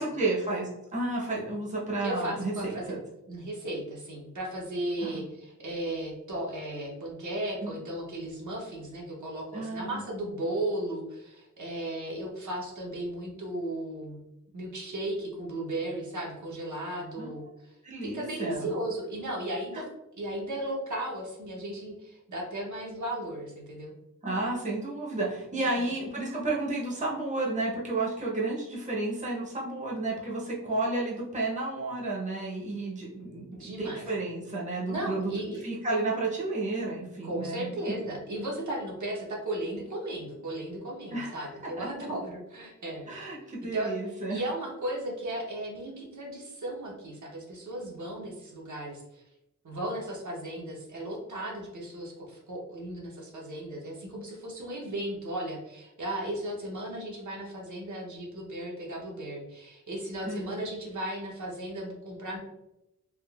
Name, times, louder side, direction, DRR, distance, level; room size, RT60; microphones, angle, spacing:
voice 1, 0.0-3.0 5.0-5.2 7.6-7.7 9.5-10.1 17.2-17.3 17.8-18.7 19.7-19.8 24.2-35.3 35.6-37.9 41.1-41.5 41.8-42.1 43.1-44.4 60.3-60.6, right 2 dB, 20° right, -4 dB, 0.7 m, -32 dB
voice 2, 2.0-2.9 3.3-14.2 14.5-17.8 18.1-19.9 20.2-23.9 25.5-25.9 33.5-34.0 34.9-35.6 37.2-43.1 43.7-49.2 49.6-62.4, right 1 dB, 60° right, -3 dB, 0.8 m, -35 dB
3.6 x 2.3 x 2.3 m, 0.90 s
wide cardioid pair, 90°, 33 cm